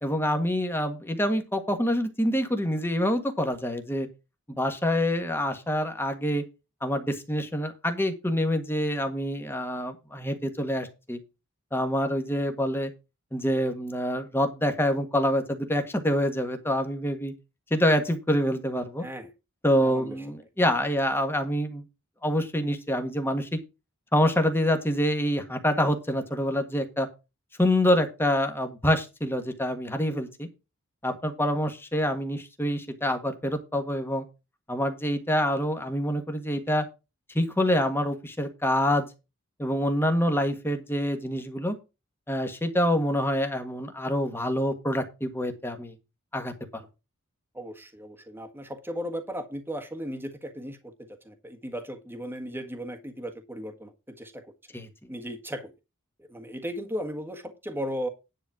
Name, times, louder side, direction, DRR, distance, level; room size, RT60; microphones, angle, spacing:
voice 1, 0.0-4.1 4.6-6.4 6.8-11.2 11.7-12.9 13.3-17.3 17.7-19.0 19.6-21.8 22.2-23.6 24.1-27.1 27.6-30.5 31.0-34.2 34.7-36.8 37.3-39.1 39.6-41.7 42.3-45.9 46.3-46.8 54.7-54.9, equal, 10° left, 1.6 m, -26 dB
voice 2, 19.0-19.3 19.8-20.2 47.5-50.9 51.2-54.4 55.1-55.7 56.2-58.1, equal, 10° right, 1.5 m, -36 dB
10.5 x 4.2 x 7.4 m
head